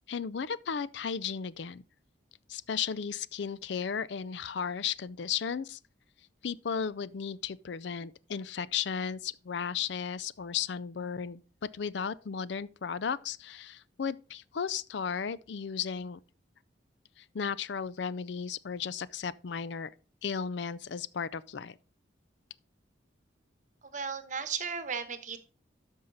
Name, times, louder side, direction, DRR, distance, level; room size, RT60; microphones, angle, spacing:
voice 1, 0.1-1.8 2.5-5.8 6.4-16.2 17.2-19.9 20.2-21.7, left 7 dB, 65° left, 0.4 m, -35 dB
voice 2, 23.8-25.4, right 6 dB, 40° right, 1.0 m, -35 dB
12.5 x 5.6 x 4.0 m
head